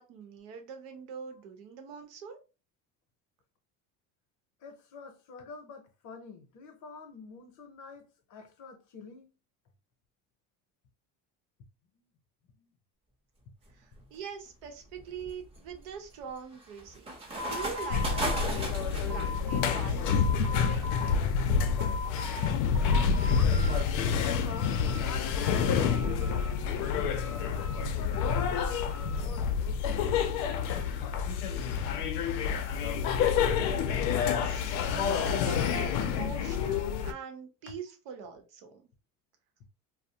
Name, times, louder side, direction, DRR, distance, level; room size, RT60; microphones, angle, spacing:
voice 1, 0.0-2.4 13.7-17.0 17.4-20.9 33.2-34.0 34.2-38.8, right 6 dB, 85° right, 0.8 m, -43 dB
voice 2, 4.6-9.3 11.9-12.1 12.4-12.7 23.7-25.9 26.5-30.4, left 4 dB, 50° left, 0.7 m, -47 dB
sound 1, 13.7-14.0 14.6-19.2, right 2 dB, 15° right, 0.6 m, -37 dB
sound 2, 17.3-19.8 20.1-21.1 21.5-22.5 22.7-23.8 24.2-25.2 25.4-26.7 27.2-29.2, left 2 dB, 50° right, 0.7 m, -41 dB
sound 3, 17.9-37.1, left 6 dB, 90° left, 0.5 m, -28 dB
2.4 x 2.0 x 2.7 m
cardioid pair, 130°, 38 cm